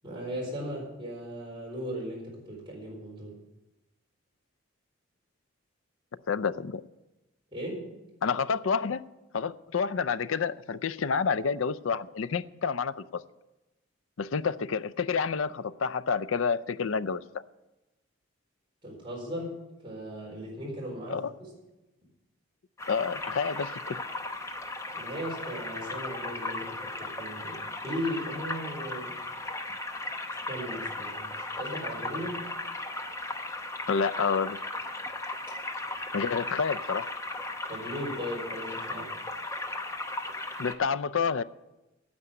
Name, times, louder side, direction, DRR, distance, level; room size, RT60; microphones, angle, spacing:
voice 1, 0.0-3.4 7.5-7.9 18.8-21.2 24.9-29.2 30.4-32.5 37.7-39.1, equal, 25° right, 4.3 m, -37 dB
voice 2, 6.3-6.8 8.2-9.0 9.3-13.2 14.2-17.2 21.1-21.3 22.9-24.0 33.9-34.6 36.1-37.1 40.6-41.4, left 5 dB, 75° left, 0.5 m, -29 dB
sound 1, 22.8-40.7, left 2 dB, 15° left, 0.8 m, -36 dB
9.6 x 7.9 x 9.4 m
head